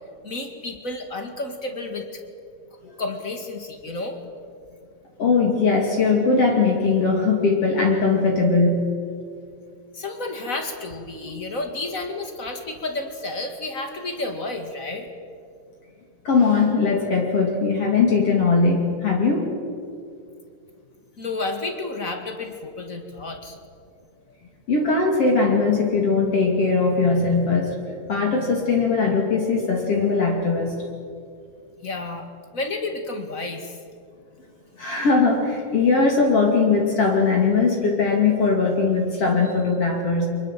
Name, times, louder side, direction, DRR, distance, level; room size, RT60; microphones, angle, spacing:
voice 1, 0.2-2.2 3.0-4.2 9.9-15.1 21.2-23.6 31.8-32.3 32.5-33.8, left 2 dB, 30° left, 5 dB, 1.8 m, -31 dB
voice 2, 5.2-8.9 16.3-19.5 24.7-27.7 28.1-30.8 34.8-40.3, left 4 dB, 50° left, 0 dB, 3.3 m, -20 dB
25.0 x 21.5 x 7.5 m, 2.3 s
omnidirectional pair, 3.7 m